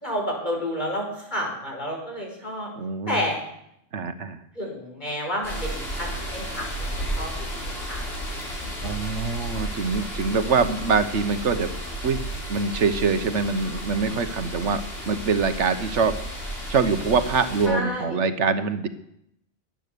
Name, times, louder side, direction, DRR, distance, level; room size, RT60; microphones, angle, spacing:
voice 1, 0.0-2.7 3.1-3.4 4.5-6.9 7.1-8.0 8.3-8.7 17.7-18.2, equal, 40° left, 0 dB, 5.2 m, -30 dB
voice 2, 2.8-3.2 3.9-4.4 8.8-11.7 12.0-18.9, right 5 dB, 80° right, 9 dB, 1.3 m, -24 dB
sound 1, 5.4-17.7, right 1 dB, 55° left, 6.8 m, -33 dB
23.5 x 9.2 x 6.8 m, 0.79 s
omnidirectional pair, 1.2 m